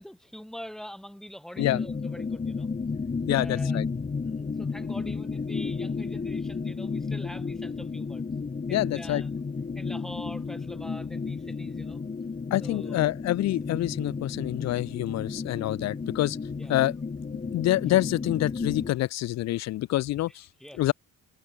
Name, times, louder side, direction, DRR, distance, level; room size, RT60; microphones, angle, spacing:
voice 1, 0.0-2.7 3.3-3.8 4.2-8.2 8.7-9.3 9.7-12.0 12.6-13.1 16.6-16.9 20.3-20.8, equal, ahead, 2.9 m, -44 dB
sound 1, 1.6-18.9, left 4 dB, 25° left, 1.6 m, -33 dB
voice 2, 3.3-3.9 8.7-9.2 12.5-16.4 16.7-16.9 17.5-20.5 20.8-20.9, left 15 dB, 60° left, 0.5 m, -26 dB
cardioid pair, 90°, 30 cm